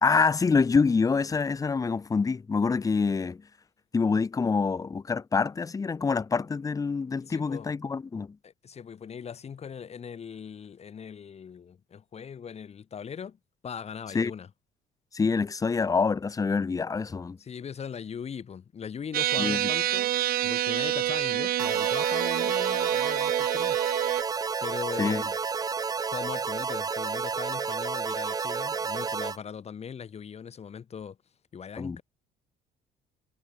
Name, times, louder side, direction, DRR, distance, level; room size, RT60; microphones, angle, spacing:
voice 1, 0.0-3.4 3.9-8.4 14.1-14.3 15.1-17.4 19.4-19.7 25.0-25.3 31.8-32.0, left 4 dB, 20° left, 0.7 m, -26 dB
voice 2, 7.2-7.7 8.4-13.4 13.6-14.5 17.4-23.8 24.4-25.4 26.1-31.2 31.5-32.0, left 7 dB, 40° left, 2.4 m, -40 dB
sound 1, 19.1-24.2, right 13 dB, 60° right, 0.9 m, -27 dB
sound 2, 21.6-29.4, right 5 dB, 20° right, 0.5 m, -31 dB
cardioid pair, 110°, 17 cm